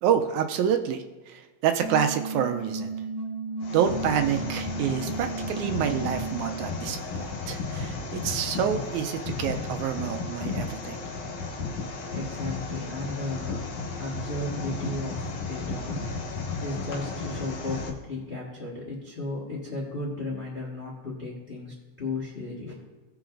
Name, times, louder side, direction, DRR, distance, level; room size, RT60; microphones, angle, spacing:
voice 1, 0.0-2.9 3.7-11.0, right 8 dB, 80° right, 6 dB, 2.0 m, -28 dB
sound 1, 1.8-6.8, right 3 dB, 10° right, 0.4 m, -34 dB
sound 2, 3.6-17.9, left 3 dB, 80° left, 2.6 m, -34 dB
voice 2, 11.9-13.6 13.9-16.3 16.6-22.7, left 2 dB, 25° left, -4 dB, 1.2 m, -35 dB
17.0 x 6.0 x 2.5 m, 1.2 s
omnidirectional pair, 3.4 m